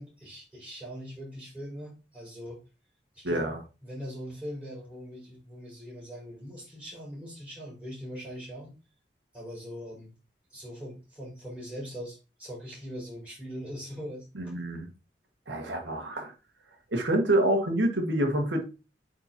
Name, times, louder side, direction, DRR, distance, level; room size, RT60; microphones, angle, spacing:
voice 1, 0.0-2.6 3.1-3.5 3.8-8.8 9.3-10.1 10.5-14.5, equal, 5° right, 4.3 m, -41 dB
voice 2, 3.2-3.6 14.3-14.9 15.5-16.3 16.9-18.6, right 1 dB, 80° right, 1.7 m, -27 dB
8.8 x 4.5 x 2.8 m
head